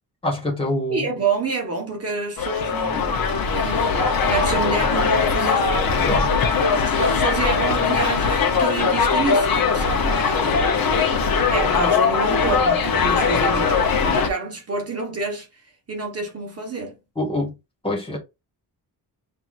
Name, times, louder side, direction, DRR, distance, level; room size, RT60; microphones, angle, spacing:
voice 1, 0.2-1.1 6.1-6.3 13.3-13.4 17.1-17.5 17.8-18.2, left 1 dB, 15° left, 1.6 m, -25 dB
voice 2, 0.9-3.9 4.3-5.9 6.8-10.7 11.5-15.5 15.9-17.0, right 3 dB, 35° right, 1.3 m, -28 dB
sound 1, 2.4-14.3, left 5 dB, 60° left, 0.9 m, -20 dB
6.0 x 2.8 x 2.5 m
wide cardioid pair, 160°, 40 cm